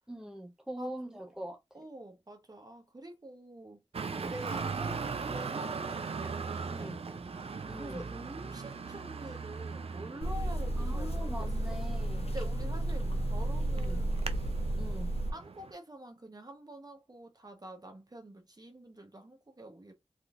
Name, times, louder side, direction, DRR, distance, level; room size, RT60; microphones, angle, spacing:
voice 1, 0.1-1.8 4.1-4.3 6.7-7.0 7.7-8.0 10.8-12.3 13.8-14.0 14.8-15.1, right 1 dB, 5° right, 0.7 m, -42 dB
voice 2, 0.8-1.2 1.7-11.8 12.3-14.2 15.3-19.9, right 1 dB, 35° right, 0.9 m, -47 dB
Traffic noise roadway noise, 3.9-15.7, right 5 dB, 65° right, 0.4 m, -40 dB
sound 1, 10.2-15.3, right 1 dB, 70° left, 0.7 m, -32 dB
3.6 x 2.6 x 2.4 m
wide cardioid pair, 50°, 11 cm